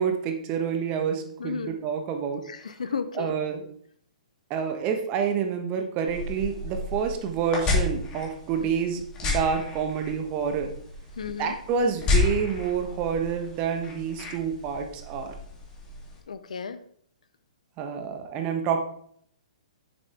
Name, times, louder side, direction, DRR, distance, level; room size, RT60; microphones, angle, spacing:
voice 1, 0.0-2.4 3.1-3.6 4.5-10.7 11.4-15.4 17.8-18.8, right 7 dB, 30° right, 5 dB, 1.3 m, -28 dB
voice 2, 1.4-1.7 2.5-3.3 8.6-8.7 11.2-11.5 16.3-16.8, left 6 dB, 70° left, 13 dB, 0.7 m, -33 dB
sound 1, 6.1-16.2, left 3 dB, 20° left, 3.0 m, -31 dB
9.2 x 7.0 x 3.6 m, 0.63 s
figure-of-eight pair, 120°, 4 cm